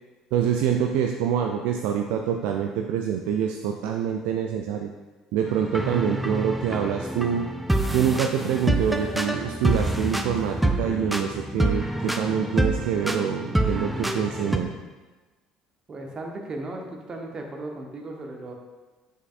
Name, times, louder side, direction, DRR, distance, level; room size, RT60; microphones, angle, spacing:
voice 1, 0.3-4.9 5.3-7.5 7.9-14.7, right 8 dB, 60° right, 3 dB, 0.4 m, -26 dB
sound 1, 5.5-14.6, right 1 dB, 5° right, 0.6 m, -27 dB
voice 2, 15.9-18.5, right 2 dB, 35° right, 1 dB, 1.1 m, -36 dB
7.6 x 6.3 x 2.5 m, 1.2 s
figure-of-eight pair, 55°, 2 cm